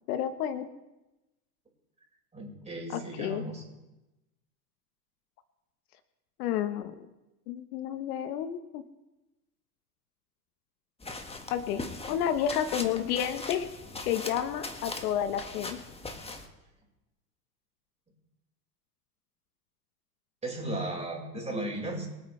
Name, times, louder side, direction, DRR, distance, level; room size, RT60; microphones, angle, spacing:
voice 1, 0.1-0.7 2.9-3.4 6.4-6.9 7.5-8.8 11.5-11.8 12.1-13.7 14.0-15.8, left 9 dB, 60° left, 10 dB, 1.2 m, -30 dB
voice 2, 2.3-3.6 20.4-22.1, right 1 dB, 15° right, -1 dB, 5.0 m, -35 dB
sound 1, 11.0-16.5, left 3 dB, 10° left, 1.6 m, -40 dB
24.0 x 8.9 x 3.3 m, 1.0 s
hypercardioid pair, 100°, 49 cm